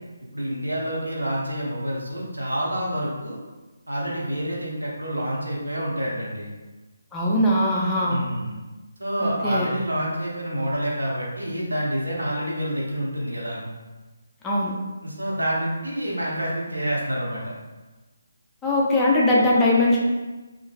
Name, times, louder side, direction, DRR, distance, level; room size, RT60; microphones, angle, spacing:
voice 1, 0.3-3.4 3.9-6.5 8.1-8.6 9.0-13.6 15.0-17.5, equal, 85° right, -3 dB, 0.8 m, -28 dB
voice 2, 7.1-8.2 9.2-9.7 14.4-14.7 18.6-20.0, left 1 dB, 10° left, -5 dB, 0.4 m, -20 dB
3.1 x 2.5 x 2.3 m, 1.2 s
figure-of-eight pair, 150°, 0 cm